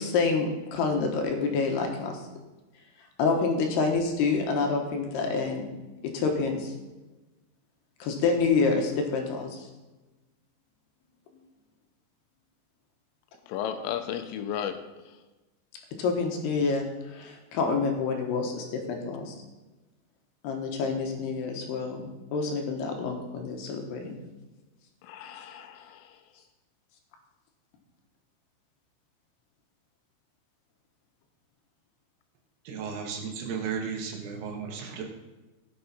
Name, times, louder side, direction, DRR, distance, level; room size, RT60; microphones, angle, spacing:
voice 1, 0.0-2.2 3.2-5.7 6.1-6.7 8.0-9.6 16.0-19.4 20.4-24.2, left 4 dB, 70° left, 2 dB, 2.8 m, -27 dB
voice 2, 13.5-14.8 25.0-26.2, left 9 dB, 85° left, 8 dB, 3.3 m, -34 dB
voice 3, 32.7-35.0, right 6 dB, 85° right, 0 dB, 4.3 m, -34 dB
17.0 x 6.9 x 4.2 m, 1.1 s
omnidirectional pair, 5.9 m